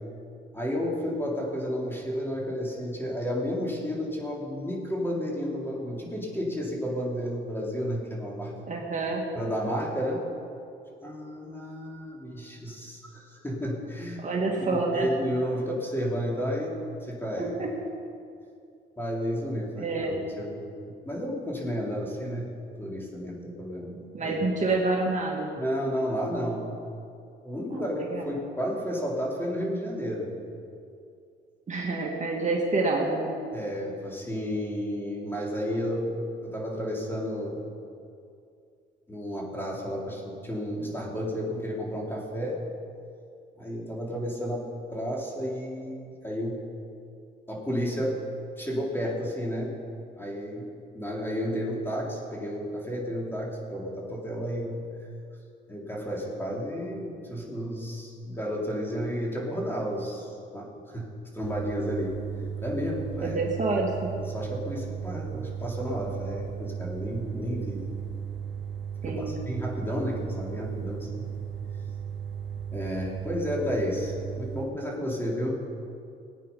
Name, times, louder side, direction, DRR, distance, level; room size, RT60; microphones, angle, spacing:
voice 1, 0.5-8.5 9.4-10.2 11.0-14.2 14.7-17.6 19.0-22.5 22.8-24.3 25.6-26.7 27.4-30.3 33.5-37.6 39.1-42.6 43.6-46.6 47.5-48.2 48.6-49.7 50.2-50.7 50.9-54.8 55.7-62.2 62.6-63.4 64.2-67.9 69.1-71.3 71.7-71.8 72.7-75.6, equal, 10° left, -3 dB, 3.6 m, -32 dB
voice 2, 8.7-9.2 14.2-15.1 17.4-17.7 19.8-20.2 24.1-25.5 27.7-28.3 31.7-33.3 63.2-64.1 69.0-69.3, right 3 dB, 40° right, -1 dB, 2.0 m, -28 dB
sound 1, 61.4-74.7, right 8 dB, 70° right, 3.9 m, -36 dB
18.5 x 9.0 x 5.5 m, 2.5 s
cardioid pair, 90°, 20 cm